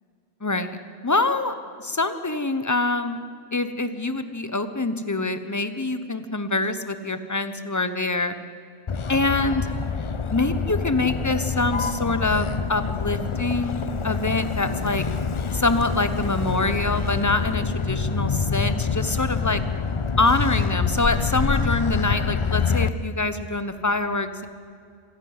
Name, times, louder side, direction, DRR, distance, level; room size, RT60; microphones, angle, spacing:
voice 1, 0.4-0.8 1.0-1.5 1.8-3.2 3.5-8.4 9.1-9.7 10.3-15.0 15.5-19.6 20.2-24.5, left 2 dB, 15° left, 10 dB, 0.9 m, -25 dB
Motor vehicle (road), 8.9-22.9, left 5 dB, 50° left, 0.3 m, -26 dB
26.5 x 11.5 x 9.6 m, 2.3 s
omnidirectional pair, 1.3 m